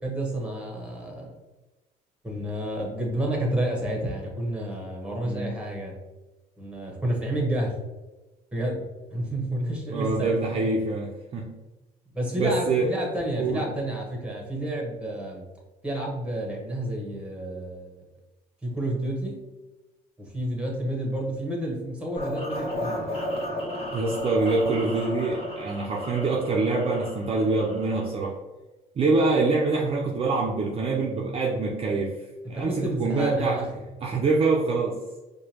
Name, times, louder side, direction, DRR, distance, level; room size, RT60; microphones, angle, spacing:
voice 1, 0.0-1.3 2.2-6.0 6.6-7.7 8.5-8.8 9.1-10.7 12.1-15.4 15.8-18.0 18.6-19.4 20.2-23.0 32.5-33.7, right 1 dB, 5° right, 0 dB, 1.1 m, -30 dB
voice 2, 9.9-11.5 12.3-12.9 13.4-13.6 23.9-28.4 29.0-32.2 32.5-33.6 34.0-34.9, right 3 dB, 35° right, -2 dB, 0.5 m, -25 dB
sound 1, 22.2-28.1, left 1 dB, 35° left, 1.3 m, -33 dB
4.8 x 2.2 x 2.9 m, 1.1 s
cardioid pair, 110°, 17 cm